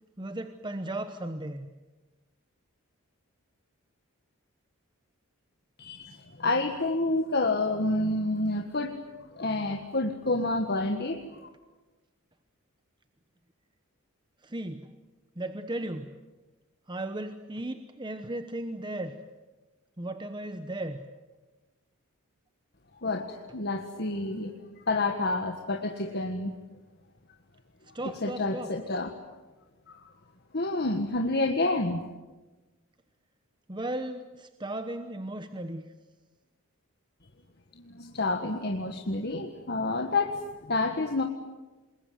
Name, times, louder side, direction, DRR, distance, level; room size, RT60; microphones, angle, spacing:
voice 1, 0.2-1.7 14.4-14.9 15.4-16.1 16.9-19.2 20.0-21.0 27.9-28.7 33.7-35.9, right 1 dB, 20° right, 8 dB, 1.0 m, -36 dB
voice 2, 5.8-9.0 9.4-11.2 23.0-26.5 28.0-29.1 29.9-30.1 30.5-32.0 37.7-41.2, left 2 dB, 50° left, 4 dB, 1.6 m, -29 dB
27.5 x 21.5 x 9.4 m, 1.2 s
head